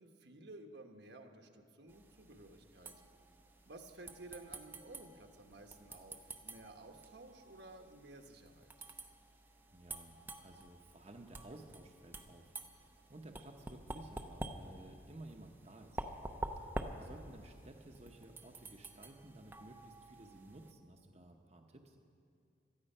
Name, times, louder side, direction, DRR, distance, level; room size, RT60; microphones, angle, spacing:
voice 1, 0.0-3.0 3.6-8.7, right 2 dB, 70° right, 4 dB, 1.2 m, -54 dB
sound 1, 1.9-20.7, right 2 dB, 10° right, 0.7 m, -49 dB
voice 2, 9.7-16.0 17.0-22.0, right 1 dB, 35° right, 2 dB, 0.9 m, -55 dB
17.5 x 13.0 x 5.5 m, 2.3 s
head